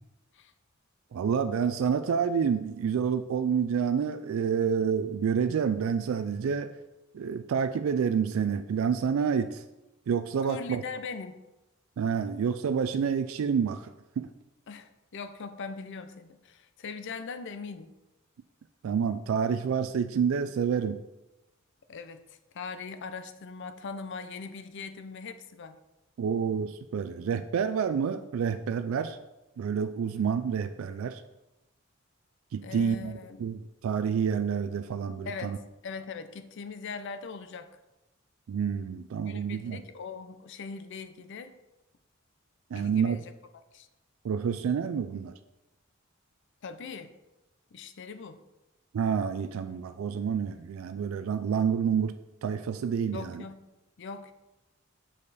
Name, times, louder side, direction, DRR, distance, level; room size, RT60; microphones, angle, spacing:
voice 1, 1.1-6.7 7.1-9.6 10.1-10.8 12.0-13.9 14.2-14.3 18.8-21.0 26.2-29.2 29.6-31.2 32.5-35.6 38.5-39.8 42.7-43.2 44.2-45.3 48.9-52.2 52.4-53.4, right 7 dB, 75° right, 10 dB, 0.3 m, -28 dB
voice 2, 10.5-11.4 14.7-17.9 21.9-25.8 32.6-33.4 35.3-37.7 39.3-41.5 42.7-43.3 43.7-43.9 46.6-47.1 47.7-48.4 53.1-53.7 54.0-54.3, left 5 dB, 60° left, 10 dB, 0.5 m, -41 dB
6.6 x 5.4 x 4.0 m, 0.99 s
head